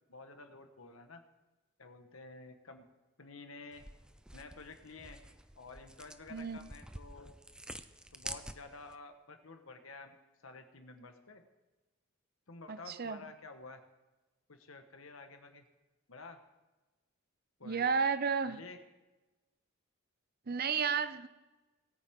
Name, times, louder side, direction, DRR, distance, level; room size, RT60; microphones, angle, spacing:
voice 1, 0.1-1.2 1.8-2.8 3.2-3.8 4.3-5.2 5.5-7.4 8.1-10.2 10.4-11.4 12.5-13.8 14.5-15.6 16.1-16.4 17.6-17.9 18.4-18.8, left 3 dB, 70° left, 6 dB, 1.4 m, -51 dB
sound 1, 3.7-8.9, right 1 dB, 5° right, 0.4 m, -49 dB
voice 2, 6.3-6.6 12.7-13.2 17.6-18.6 20.5-21.3, right 6 dB, 45° right, 13 dB, 0.6 m, -32 dB
20.0 x 9.2 x 3.7 m, 1.1 s
head